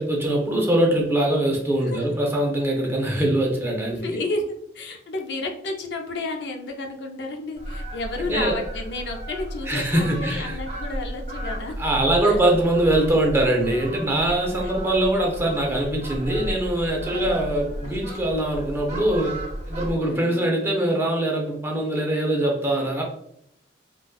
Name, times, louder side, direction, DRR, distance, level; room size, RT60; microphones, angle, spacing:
voice 1, 0.0-4.2 8.2-8.6 9.7-10.6 11.8-23.0, right 1 dB, 15° right, -1 dB, 0.6 m, -23 dB
voice 2, 3.9-4.4 4.7-11.7 12.2-12.4 14.6-14.7 17.1-17.6 20.0-20.5, left 2 dB, 70° left, 3 dB, 0.5 m, -32 dB
Fowl, 7.6-20.0, equal, 40° right, 1.2 m, -34 dB
4.0 x 2.3 x 2.2 m, 0.73 s
head